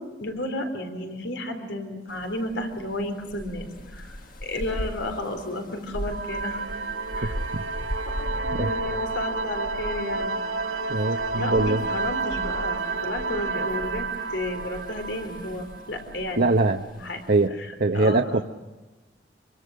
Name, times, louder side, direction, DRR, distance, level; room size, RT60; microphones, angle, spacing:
voice 1, 0.0-6.6 7.1-7.4 8.2-10.4 11.1-14.1 14.3-16.5 16.9-17.2 17.6-17.7 17.9-18.2, left 1 dB, 85° left, 5 dB, 4.0 m, -32 dB
sound 1, 2.1-17.5, equal, 50° left, 1.7 m, -39 dB
sound 2, 6.0-16.4, right 4 dB, 90° right, 2.0 m, -30 dB
voice 2, 10.9-11.8 16.4-16.8 17.3-17.5 17.8-18.4, right 2 dB, 60° right, 4 dB, 0.9 m, -22 dB
26.5 x 24.0 x 6.4 m, 1.2 s
head